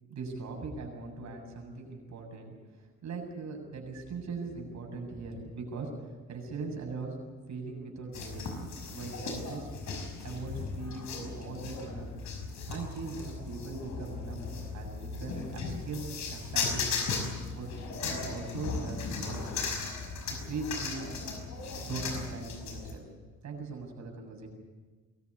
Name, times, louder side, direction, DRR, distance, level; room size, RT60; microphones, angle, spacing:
voice 1, 0.1-2.5 3.0-5.9 6.3-7.1 7.5-9.7 10.2-12.1 12.7-14.5 14.7-17.0 17.5-17.8 18.1-19.4 20.2-21.1 21.8-23.0 23.4-24.5, right 4 dB, 65° right, 2 dB, 7.4 m, -40 dB
sound 1, 8.1-22.9, left 4 dB, 70° left, 5.7 m, -37 dB
23.5 x 14.5 x 9.9 m, 1.4 s
cardioid pair, 90°, 30 cm